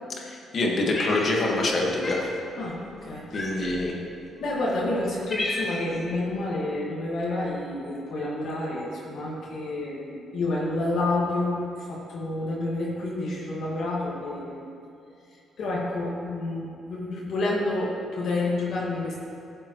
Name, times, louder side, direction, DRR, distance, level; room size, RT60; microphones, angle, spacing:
voice 1, 0.2-2.2 3.3-4.0, left 2 dB, 50° left, -1 dB, 1.7 m, -25 dB
Cat, 0.9-1.7 2.0-2.3 3.3-3.8 4.5-4.6 5.0-6.0, left 1 dB, 30° left, 1.9 m, -32 dB
voice 2, 2.6-3.6 4.4-14.7 15.3-19.2, left 2 dB, 70° left, -5 dB, 1.9 m, -29 dB
15.5 x 7.3 x 3.2 m, 2.6 s
cardioid pair, 90°, 0 cm